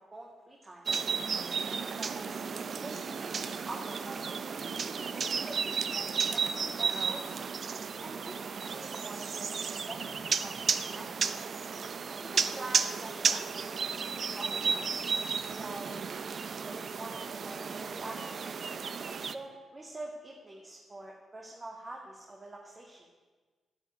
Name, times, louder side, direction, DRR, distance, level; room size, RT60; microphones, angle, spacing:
voice 1, 0.1-0.8 1.5-4.4 4.8-7.3 8.0-8.4 8.7-11.1 12.2-15.9 16.5-18.6 19.3-23.1, right 2 dB, 35° right, -1 dB, 2.2 m, -46 dB
sound 1, 0.9-19.4, right 5 dB, 60° right, 0.7 m, -33 dB
9.6 x 8.1 x 9.6 m, 1.3 s
hypercardioid pair, 40°, 0 cm